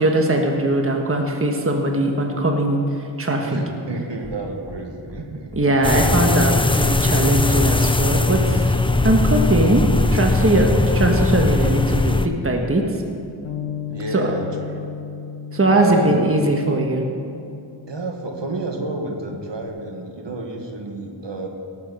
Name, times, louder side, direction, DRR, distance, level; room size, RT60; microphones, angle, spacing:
voice 1, 0.0-2.8 3.2-3.6 5.6-8.8 9.0-12.8 14.1-14.3 15.5-17.1, right 1 dB, 25° right, 2 dB, 1.4 m, -20 dB
voice 2, 3.5-5.8 13.9-14.5 15.7-16.2 17.9-21.5, right 3 dB, 60° right, 2 dB, 1.7 m, -29 dB
sound 1, 4.2-4.4 4.6-4.8 5.1-5.2 5.5-5.6 5.9-6.1 6.4-6.5 6.8-6.9 7.2-7.8 8.1-8.2 8.5-8.6 8.9-9.1 9.4-9.5 9.8-9.9 10.2-10.4 10.6-10.9, left 2 dB, 55° left, 2.6 m, -38 dB
sound 2, 5.8-12.3, left 2 dB, 10° left, 0.6 m, -19 dB
Bass guitar, 13.4-19.7, left 7 dB, 85° left, 1.0 m, -36 dB
18.0 x 7.5 x 5.6 m, 2.6 s
wide cardioid pair, 60°, 48 cm